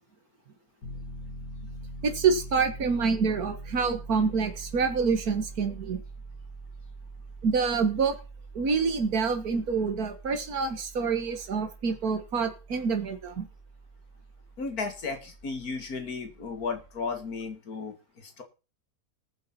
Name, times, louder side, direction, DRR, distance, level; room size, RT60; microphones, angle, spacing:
Piano, 0.8-17.5, right 2 dB, 90° left, 7.3 m, -44 dB
voice 1, 2.0-6.0 7.4-8.2 8.5-13.5, right 5 dB, 65° right, 7 dB, 2.1 m, -27 dB
voice 2, 14.6-18.4, left 4 dB, 65° left, 7 dB, 2.4 m, -34 dB
19.5 x 7.5 x 4.4 m, 0.33 s
omnidirectional pair, 1.7 m